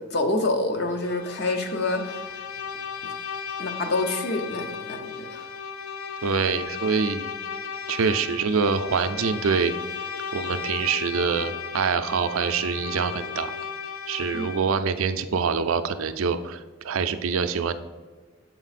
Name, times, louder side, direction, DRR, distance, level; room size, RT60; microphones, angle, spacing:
voice 1, 0.1-2.4 3.0-3.1 3.6-5.5 14.3-14.5, left 2 dB, 50° left, 6 dB, 0.7 m, -27 dB
Bowed string instrument, 0.9-14.8, left 6 dB, 90° left, 0.5 m, -35 dB
voice 2, 6.2-7.3 7.9-9.7 10.3-13.5 14.1-17.7, right 5 dB, 80° right, 10 dB, 0.4 m, -25 dB
7.0 x 4.4 x 4.1 m, 1.4 s
head